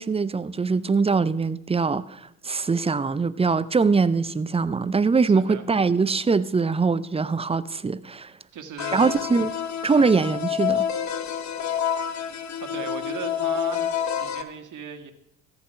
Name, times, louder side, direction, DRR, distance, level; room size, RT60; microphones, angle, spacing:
voice 1, 0.0-8.3 8.9-9.5 9.8-10.8, right 4 dB, 15° right, 0.5 m, -22 dB
voice 2, 5.2-5.7 8.5-9.2 9.9-10.3 12.6-15.1, right 7 dB, 40° right, 1.8 m, -38 dB
sound 1, 8.8-14.4, left 9 dB, 40° left, 1.1 m, -28 dB
14.0 x 8.9 x 5.8 m
hypercardioid pair, 55°, 44 cm